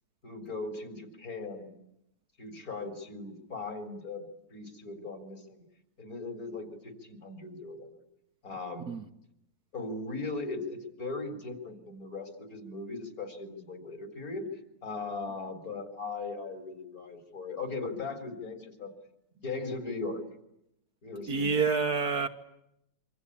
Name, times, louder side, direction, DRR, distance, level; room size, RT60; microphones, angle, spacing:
voice 1, 0.2-1.7 2.4-5.6 6.0-7.9 8.4-9.0 9.7-14.5 14.8-18.9 19.4-20.2 21.0-21.7, left 3 dB, 50° left, 4.4 m, -38 dB
voice 2, 21.3-22.3, right 5 dB, 60° right, 1.7 m, -27 dB
27.0 x 25.5 x 8.6 m
omnidirectional pair, 2.0 m